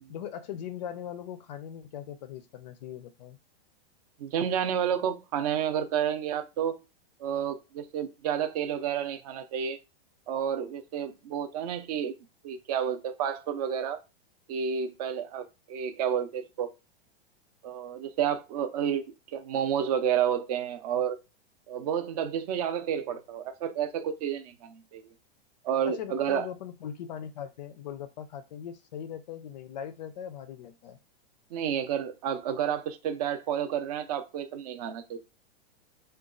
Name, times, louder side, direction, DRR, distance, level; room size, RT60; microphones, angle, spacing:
voice 1, 0.1-3.4 25.8-31.0, left 9 dB, 45° left, 0.4 m, -40 dB
voice 2, 4.2-6.8 7.2-9.8 10.3-12.1 12.4-14.0 14.5-16.7 17.6-21.2 21.7-25.1 25.6-26.5 31.5-35.2, right 8 dB, 40° right, 0.5 m, -30 dB
3.9 x 2.2 x 3.7 m
supercardioid pair, 165°, 31 cm